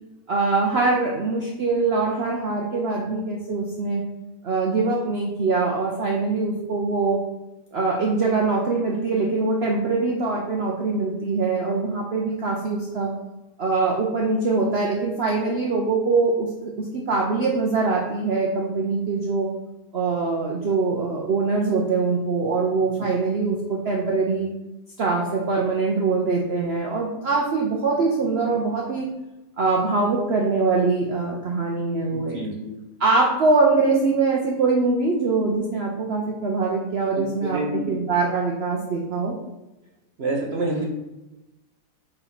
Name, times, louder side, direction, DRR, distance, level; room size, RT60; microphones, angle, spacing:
voice 1, 0.3-4.0 4.4-7.2 7.7-13.1 13.6-16.5 16.8-19.5 19.9-24.5 25.0-29.1 29.6-32.4 33.0-39.3, right 3 dB, 65° right, -1 dB, 0.6 m, -23 dB
voice 2, 32.1-32.7 37.1-38.0 40.2-40.8, right 2 dB, 45° right, -1 dB, 0.9 m, -28 dB
4.9 x 3.7 x 5.7 m, 0.99 s
omnidirectional pair, 2.1 m